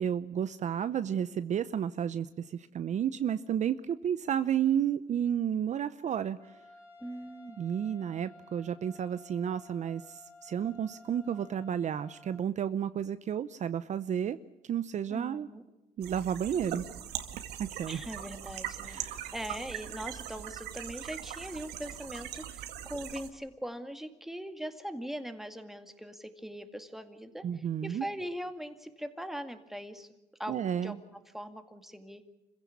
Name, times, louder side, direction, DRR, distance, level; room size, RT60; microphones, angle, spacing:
voice 1, 0.0-6.4 7.6-14.4 14.7-15.5 16.0-16.8 17.6-18.0 18.8-19.3 27.4-28.1 30.5-31.0, right 9 dB, 45° right, 13 dB, 0.7 m, -32 dB
Trumpet, 6.4-12.4, left 2 dB, 15° left, 3.7 m, -55 dB
voice 2, 7.0-7.6 15.1-15.6 17.9-19.0 19.3-22.6 22.9-30.1 30.4-32.2, equal, ahead, 7 dB, 2.1 m, -41 dB
sound 1, 16.0-23.3, right 11 dB, 80° right, 2.1 m, -41 dB
26.5 x 16.0 x 8.5 m, 1.0 s
cardioid pair, 110°, 17 cm